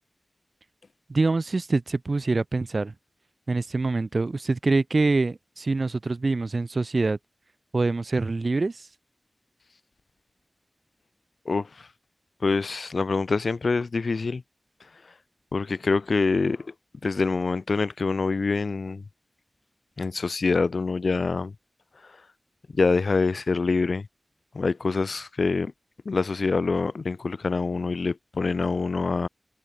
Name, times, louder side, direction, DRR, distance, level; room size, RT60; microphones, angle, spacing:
voice 1, 1.1-2.9 3.5-7.2 7.7-8.9, right 3 dB, 60° right, 3.2 m, -25 dB
voice 2, 12.4-14.4 15.5-16.6 17.0-19.0 20.0-21.5 22.8-24.0 24.6-25.7 26.1-29.3, left 4 dB, 80° left, 0.7 m, -25 dB
wide cardioid pair, 75°, 0 cm